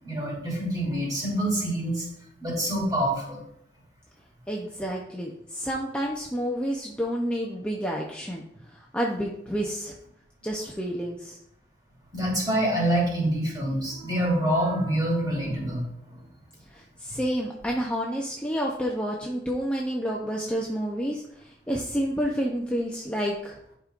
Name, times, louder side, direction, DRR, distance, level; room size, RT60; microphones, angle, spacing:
voice 1, 0.0-2.1 2.4-3.4 12.1-15.8, right 1 dB, 25° right, -4 dB, 3.0 m, -26 dB
voice 2, 4.5-9.9 10.4-11.4 16.7-23.6, equal, 5° left, -2 dB, 0.7 m, -29 dB
11.0 x 5.1 x 2.5 m, 0.76 s
head